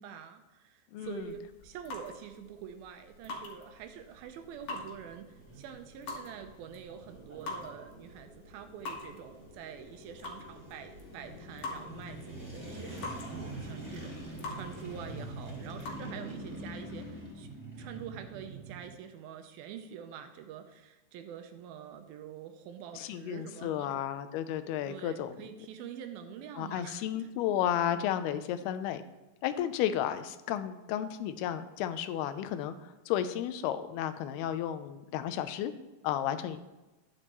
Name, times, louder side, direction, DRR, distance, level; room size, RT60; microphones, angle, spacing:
voice 1, 0.0-17.5 17.8-24.1 24.9-27.3, right 8 dB, 80° right, 7 dB, 2.5 m, -46 dB
voice 2, 0.9-1.3 23.0-25.5 26.6-29.0 29.4-35.7 36.0-36.6, left 10 dB, 85° left, 11 dB, 2.6 m, -33 dB
sound 1, 1.0-16.0, left 3 dB, 60° left, 2.9 m, -46 dB
sound 2, 3.7-18.9, right 1 dB, 5° right, 2.7 m, -45 dB
12.0 x 9.9 x 3.0 m, 1.1 s
omnidirectional pair, 4.5 m